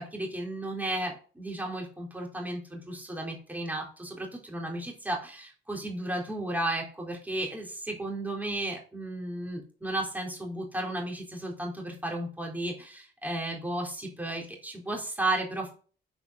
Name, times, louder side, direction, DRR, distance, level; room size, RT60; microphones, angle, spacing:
voice 1, 0.0-15.7, right 1 dB, 10° right, 0 dB, 3.7 m, -34 dB
7.9 x 7.4 x 6.3 m, 0.40 s
cardioid pair, 90°, 20 cm